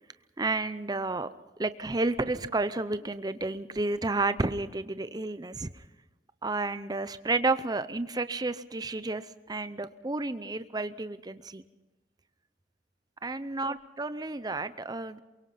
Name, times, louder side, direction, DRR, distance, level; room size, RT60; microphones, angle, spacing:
voice 1, 0.4-1.3 1.6-5.8 6.4-11.6 13.2-15.2, right 3 dB, 20° right, 13 dB, 0.7 m, -31 dB
23.0 x 23.0 x 5.8 m, 1.1 s
head